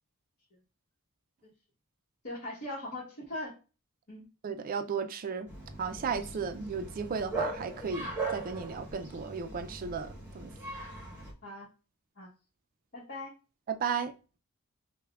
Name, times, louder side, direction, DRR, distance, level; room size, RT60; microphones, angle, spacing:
voice 1, 2.2-3.5 4.1-4.2 11.4-11.7 12.2-12.3 12.9-13.3, left 1 dB, 55° left, 1.1 m, -40 dB
voice 2, 4.4-5.5 5.8-10.5 13.7-14.1, right 6 dB, 40° right, 0.4 m, -34 dB
Bark, 5.5-11.3, right 3 dB, 10° right, 0.9 m, -39 dB
5.5 x 2.1 x 2.3 m
head